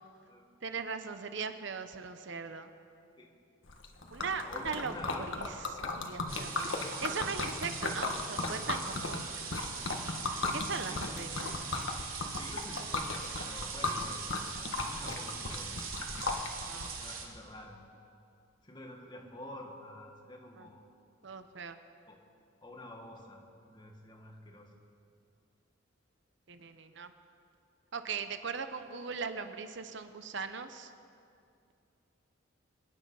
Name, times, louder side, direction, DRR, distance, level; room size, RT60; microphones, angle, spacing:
voice 1, 0.6-2.7 4.1-9.3 10.5-11.6 16.7-16.9 20.6-20.7 21.2-21.8 26.5-27.1 27.9-30.9, right 5 dB, 60° right, 9 dB, 0.8 m, -39 dB
Liquid, 3.7-16.9, left 3 dB, 70° left, 1.4 m, -36 dB
voice 2, 4.4-5.4 10.7-11.5 12.4-14.3 14.8-15.9 17.0-17.8 18.6-20.8 22.1-22.2 22.6-24.7, left 1 dB, 20° left, 1 dB, 1.8 m, -48 dB
sound 1, 6.3-17.2, right 5 dB, 90° right, 3.0 m, -42 dB
26.0 x 9.9 x 5.5 m, 2.5 s
head